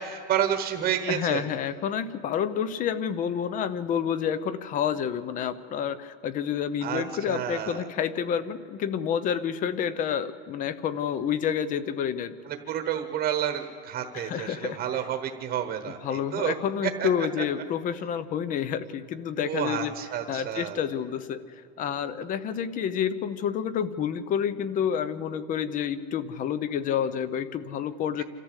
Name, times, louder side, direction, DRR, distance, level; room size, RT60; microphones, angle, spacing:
voice 1, 0.0-1.4 6.8-7.8 12.5-16.5 17.0-17.1 19.4-20.8 28.2-28.3, right 10 dB, 30° right, 7 dB, 1.2 m, -30 dB
voice 2, 1.1-12.3 14.1-14.8 16.0-19.9 20.3-21.4 21.8-28.2, left 8 dB, 25° left, 16 dB, 0.6 m, -29 dB
27.5 x 13.5 x 8.2 m, 2.7 s
cardioid pair, 180°, 31 cm